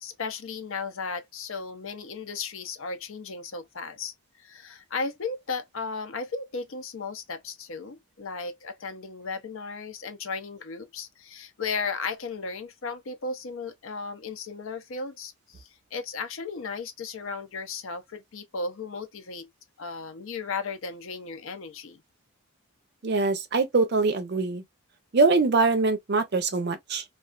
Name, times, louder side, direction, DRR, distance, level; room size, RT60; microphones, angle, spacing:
voice 1, 0.0-19.5 19.8-22.0, left 4 dB, 60° left, 0.5 m, -35 dB
voice 2, 23.0-24.6 25.1-27.0, right 3 dB, 50° right, 0.5 m, -23 dB
2.4 x 2.3 x 2.3 m
head